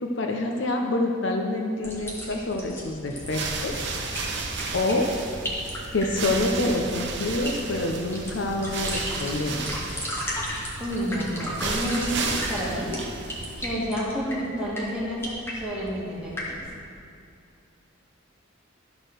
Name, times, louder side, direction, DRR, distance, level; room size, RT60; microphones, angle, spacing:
voice 1, 0.0-3.9 4.7-5.1 5.9-9.8, left 2 dB, 60° left, 2 dB, 0.7 m, -27 dB
sound 1, 1.8-16.6, equal, 10° left, 1.5 m, -36 dB
sound 2, 3.1-13.8, right 3 dB, 55° right, 0.9 m, -33 dB
voice 2, 10.5-13.3 13.6-16.6, equal, 5° right, -7 dB, 2.1 m, -30 dB
12.5 x 4.5 x 6.4 m, 2.4 s
head